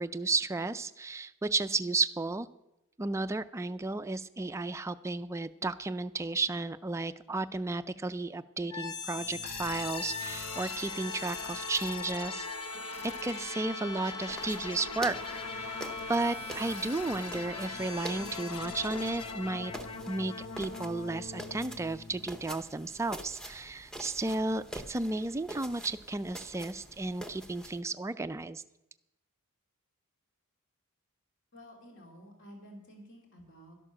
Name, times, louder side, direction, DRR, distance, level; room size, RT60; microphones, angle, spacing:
voice 1, 0.0-2.5 3.0-12.8 13.0-15.8 16.1-19.7 20.1-28.6, right 3 dB, 15° right, 11 dB, 0.3 m, -33 dB
sound 1, 8.7-22.6, left 4 dB, 85° left, 1.1 m, -39 dB
sound 2, 14.3-27.8, right 1 dB, 5° left, 0.8 m, -46 dB
voice 2, 31.5-33.7, equal, 55° left, 0 dB, 2.8 m, -51 dB
12.0 x 11.0 x 6.0 m, 0.93 s
head